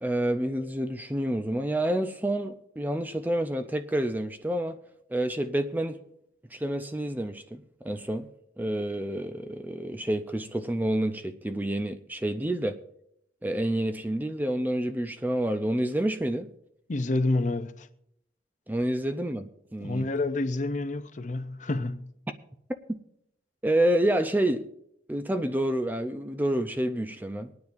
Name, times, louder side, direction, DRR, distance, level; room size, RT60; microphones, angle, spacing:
voice 1, 0.0-4.7 5.1-6.0 6.5-8.3 8.6-12.8 13.4-16.5 18.7-20.1 22.9-23.0 23.6-24.7 25.1-27.5, right 1 dB, 10° right, 0.4 m, -28 dB
voice 2, 16.9-17.9 19.8-22.1, left 2 dB, 40° left, 0.6 m, -28 dB
24.5 x 9.5 x 2.6 m
head